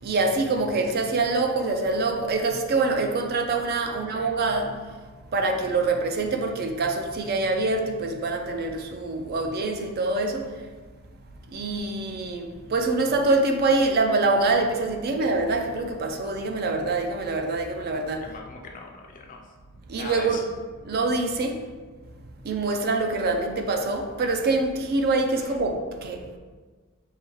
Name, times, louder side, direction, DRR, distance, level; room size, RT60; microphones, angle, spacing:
voice 1, 0.0-4.9 5.3-10.5 11.5-18.3 19.9-20.4 20.8-21.6 22.4-26.4, right 3 dB, 45° right, 4 dB, 0.4 m, -25 dB
voice 2, 3.9-4.3 18.2-19.5 20.0-20.4 25.4-25.5, left 4 dB, 40° left, 2 dB, 0.4 m, -41 dB
5.5 x 2.2 x 3.1 m, 1.4 s
head